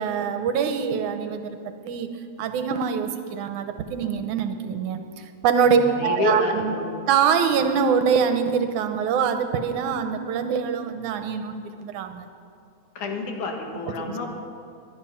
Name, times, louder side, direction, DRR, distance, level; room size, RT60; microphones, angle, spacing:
voice 1, 0.0-2.1 2.4-5.0 5.4-6.8 7.1-12.3 14.1-14.3, right 6 dB, 80° right, 8 dB, 2.3 m, -24 dB
voice 2, 5.7-6.9 13.0-14.3, left 3 dB, 80° left, 2 dB, 3.2 m, -28 dB
21.5 x 11.0 x 5.8 m, 2.5 s
omnidirectional pair, 3.5 m